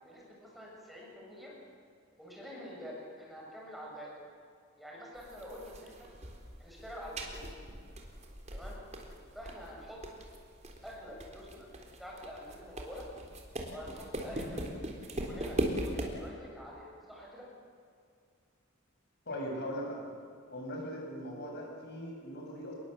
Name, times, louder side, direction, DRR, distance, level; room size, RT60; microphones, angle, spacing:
voice 1, 0.0-1.5 2.2-4.1 4.8-6.1 6.6-7.4 8.5-8.8 9.3-10.0 10.8-11.7 12.0-13.1 13.7-14.6 15.1-17.5, equal, ahead, -3 dB, 7.1 m, -47 dB
sound 1, 5.2-16.3, right 1 dB, 35° right, 3.8 m, -40 dB
voice 2, 19.3-20.1 20.5-22.7, equal, 55° left, -1 dB, 7.5 m, -39 dB
28.0 x 21.5 x 8.1 m, 2.2 s
head